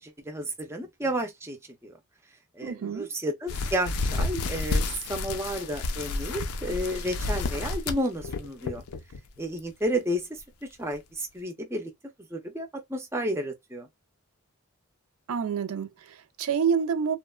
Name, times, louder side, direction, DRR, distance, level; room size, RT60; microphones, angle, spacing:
voice 1, 0.0-1.6 1.8-2.0 2.5-8.8 9.4-11.9 12.3-13.9, equal, 10° right, 0.4 m, -32 dB
voice 2, 2.6-3.1 15.3-17.2, right 6 dB, 75° right, 0.4 m, -28 dB
sound 1, 3.5-9.2 9.6-9.8 10.4-10.5 10.9-11.0, left 3 dB, 75° left, 0.4 m, -30 dB
3.0 x 2.1 x 2.2 m
head